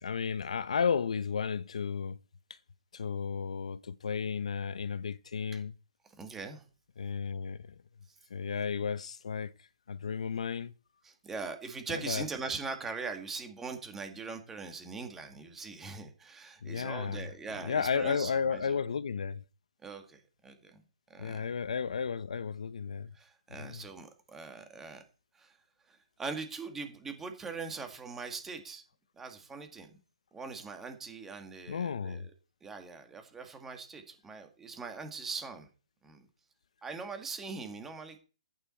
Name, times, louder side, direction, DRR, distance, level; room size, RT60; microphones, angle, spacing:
voice 1, 0.0-2.2 2.5-2.6 2.9-5.7 7.0-7.7 8.3-9.5 9.9-10.7 11.9-12.2 16.6-17.3 17.6-19.4 21.2-23.1 23.6-23.8 31.7-32.3, left 6 dB, 75° left, 0.8 m, -33 dB
voice 2, 6.2-6.6 8.1-8.2 11.0-18.8 19.8-20.8 21.1-21.5 23.1-25.0 25.3-25.6 25.9-28.8 29.2-30.0 30.3-32.2 32.6-35.7 36.0-36.3 36.8-38.2, right 4 dB, 10° right, 2.0 m, -41 dB
14.0 x 9.2 x 4.5 m
hypercardioid pair, 160°, 4 cm